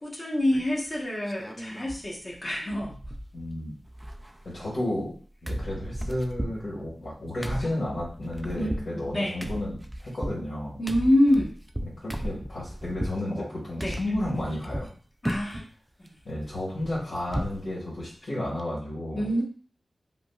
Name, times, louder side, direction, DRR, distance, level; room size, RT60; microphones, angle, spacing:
voice 1, 0.0-3.0 8.5-9.3 10.8-11.6 13.4-13.5 13.8-14.0 15.2-15.6 19.1-19.4, left 1 dB, 30° left, -4 dB, 1.1 m, -26 dB
sound 1, 0.5-0.9 1.3-2.1 2.3-2.4 2.7-3.6 3.8-5.2 5.5-13.2 13.8-14.9 15.2-15.7 16.1-17.6 18.0-18.1 18.4-18.6, equal, 10° right, 0.3 m, -36 dB
voice 2, 3.3-3.7 4.5-5.1 5.4-10.8 11.8-14.9 16.2-19.3, left 1 dB, 65° left, -8 dB, 1.6 m, -32 dB
4.9 x 2.1 x 2.3 m, 0.42 s
wide cardioid pair, 95°, 0 cm